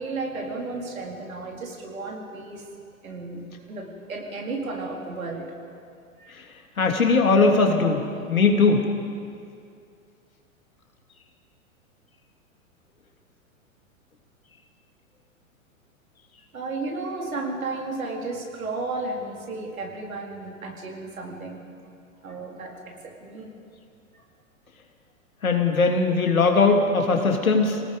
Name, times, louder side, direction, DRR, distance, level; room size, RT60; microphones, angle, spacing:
voice 1, 0.0-2.6 3.0-5.5 6.2-6.3 16.5-21.6 22.2-23.0 23.2-23.5, right 3 dB, 80° right, 0 dB, 4.2 m, -33 dB
voice 2, 6.8-8.8 25.4-27.8, left 4 dB, 85° left, 2 dB, 2.9 m, -20 dB
27.5 x 18.5 x 5.4 m, 2.3 s
hypercardioid pair, 110°, 41 cm